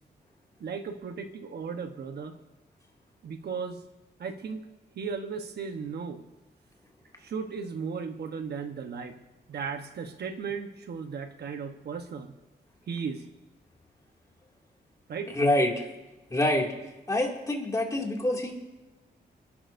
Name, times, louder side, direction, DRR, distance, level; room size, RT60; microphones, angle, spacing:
voice 1, 0.6-2.4 3.2-3.8 4.2-4.7 4.9-6.2 7.2-9.2 9.5-12.3 12.9-13.3 15.1-15.3, right 5 dB, 70° right, 6 dB, 1.1 m, -36 dB
voice 2, 15.3-15.9 16.3-16.7 17.1-18.6, left 1 dB, 20° left, -1 dB, 2.4 m, -26 dB
29.0 x 11.0 x 2.6 m, 1.1 s
wide cardioid pair, 135°, 18 cm